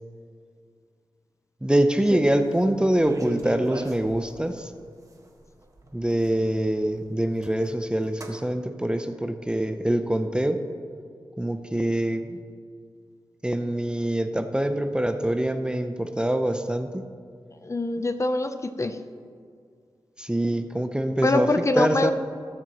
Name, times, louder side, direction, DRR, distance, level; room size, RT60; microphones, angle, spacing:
voice 1, 1.6-4.7 5.9-10.6 11.4-12.4 13.4-17.0 20.2-21.5 21.8-22.1, right 1 dB, 10° right, 8 dB, 0.6 m, -24 dB
sound 1, 2.5-2.6 2.8-4.6 5.2-5.3 5.6-6.9 7.3-7.7 8.0-8.4, right 1 dB, 40° right, 1.5 m, -36 dB
voice 2, 17.5-19.0 21.2-22.1, left 2 dB, 35° left, 9 dB, 0.6 m, -24 dB
19.5 x 7.5 x 3.0 m, 2.2 s
wide cardioid pair, 70°, 9 cm